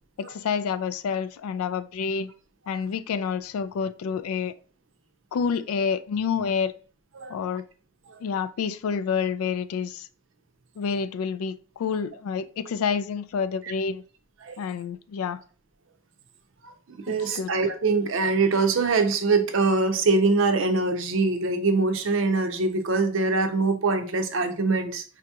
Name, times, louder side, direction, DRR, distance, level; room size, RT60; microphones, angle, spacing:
voice 1, 0.2-2.3 2.7-4.5 5.3-6.7 7.3-7.7 8.2-10.1 10.8-14.0 14.6-15.4 17.1-17.5, left 6 dB, 85° left, 15 dB, 0.3 m, -28 dB
voice 2, 16.6-25.0, right 3 dB, 60° right, 7 dB, 0.6 m, -23 dB
4.9 x 2.8 x 2.3 m, 0.39 s
head